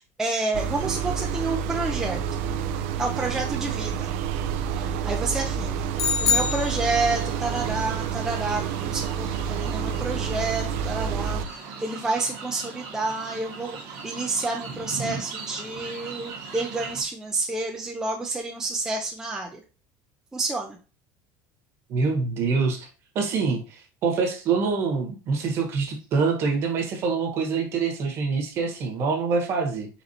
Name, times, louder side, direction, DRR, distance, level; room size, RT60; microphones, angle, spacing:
voice 1, 0.0-2.5 3.0-4.1 4.7-5.9 6.2-13.8 14.0-19.6 20.3-20.8, right 3 dB, 5° right, 0 dB, 0.4 m, -29 dB
sound 1, 0.5-11.5, right 7 dB, 80° right, 0.4 m, -29 dB
sound 2, 6.0-7.4, left 6 dB, 55° left, 0.7 m, -25 dB
sound 3, 6.6-17.0, right 5 dB, 60° right, 1.1 m, -39 dB
voice 2, 21.9-22.9 23.1-29.9, right 4 dB, 40° right, 3 dB, 1.1 m, -25 dB
4.1 x 4.1 x 2.7 m, 0.34 s
cardioid pair, 170°, 7 cm